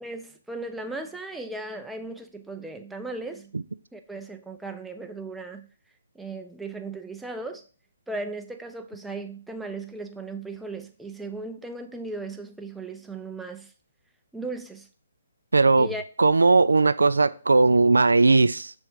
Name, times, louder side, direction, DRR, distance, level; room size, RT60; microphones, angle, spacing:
voice 1, 0.0-3.5 3.9-5.7 6.1-7.6 8.1-13.7 14.3-14.9 15.8-16.0, right 2 dB, 5° right, 0.5 m, -36 dB
voice 2, 15.5-15.9 16.2-18.7, right 3 dB, 75° right, 0.3 m, -18 dB
6.7 x 3.5 x 4.4 m
figure-of-eight pair, 135°, 0 cm